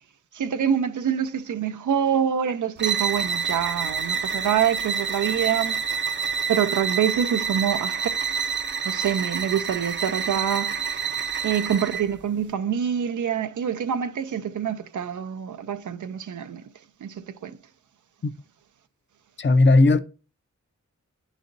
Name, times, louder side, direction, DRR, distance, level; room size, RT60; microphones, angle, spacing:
voice 1, 0.3-5.8 6.5-8.1 8.8-16.6 17.0-17.6, right 8 dB, 90° right, 0.5 m, -26 dB
sound 1, 2.8-12.1, right 6 dB, 40° right, 0.5 m, -28 dB
voice 2, 19.4-20.0, left 2 dB, 40° left, 0.5 m, -16 dB
11.0 x 4.0 x 2.6 m
wide cardioid pair, 80°, 30 cm